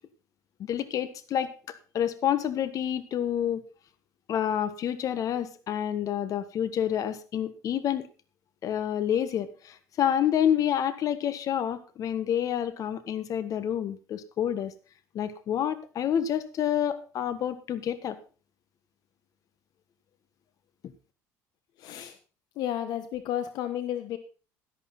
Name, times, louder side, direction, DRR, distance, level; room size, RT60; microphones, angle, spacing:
voice 1, 0.6-3.6 4.3-8.0 8.6-14.7 15.1-18.2, left 9 dB, 55° left, 13 dB, 1.5 m, -28 dB
voice 2, 21.8-22.2 22.5-24.2, left 11 dB, 70° left, 10 dB, 1.2 m, -32 dB
12.0 x 11.5 x 4.0 m, 0.36 s
cardioid pair, 110°, 7 cm